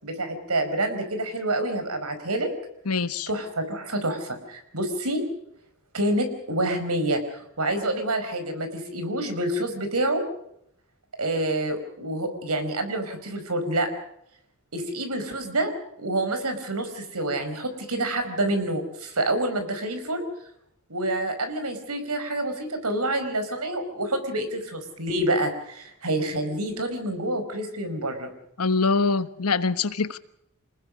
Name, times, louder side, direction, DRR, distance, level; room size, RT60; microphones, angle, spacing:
voice 1, 0.0-2.5 3.3-5.2 5.9-10.3 11.2-13.9 14.7-15.7 16.0-20.3 20.9-28.3, right 1 dB, 85° right, 8 dB, 5.1 m, -27 dB
voice 2, 2.9-3.3 28.6-30.2, left 4 dB, 85° left, 13 dB, 1.3 m, -24 dB
27.0 x 20.0 x 6.4 m, 0.75 s
head